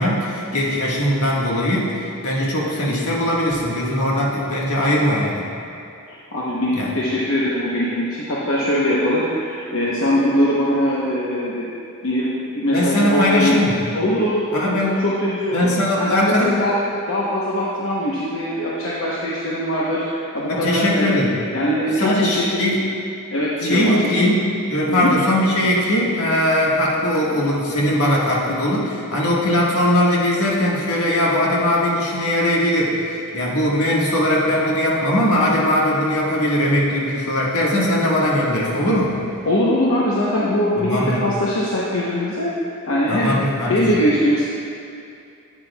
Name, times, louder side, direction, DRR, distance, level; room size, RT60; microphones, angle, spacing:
voice 1, 0.0-5.4 6.7-6.9 12.7-13.8 14.5-15.0 15.5-16.5 20.5-21.4 22.0-22.8 23.6-39.2 40.8-41.2 43.1-43.7, left 1 dB, 80° left, -4 dB, 1.6 m, -20 dB
voice 2, 6.1-11.7 12.0-12.3 12.5-13.5 13.9-15.7 16.0-16.8 17.1-21.2 21.5-22.6 23.3-24.1 24.9-25.1 39.5-44.4, left 1 dB, 60° left, -6 dB, 0.9 m, -21 dB
11.0 x 8.9 x 2.3 m, 2.5 s
head